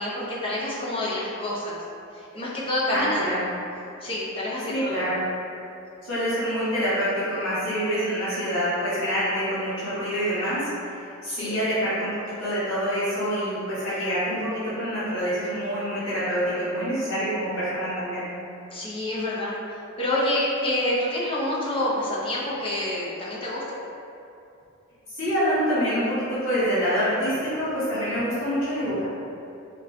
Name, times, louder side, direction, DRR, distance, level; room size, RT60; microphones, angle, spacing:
voice 1, 0.0-1.8 2.1-3.4 4.0-5.1 11.3-11.7 18.7-19.6 20.0-23.8, left 1 dB, 25° left, -6 dB, 0.7 m, -28 dB
voice 2, 2.9-3.5 4.7-5.2 6.0-10.7 11.2-12.1 12.4-18.2 25.1-29.0, equal, 75° left, -12 dB, 1.4 m, -26 dB
4.1 x 2.4 x 3.3 m, 2.7 s
head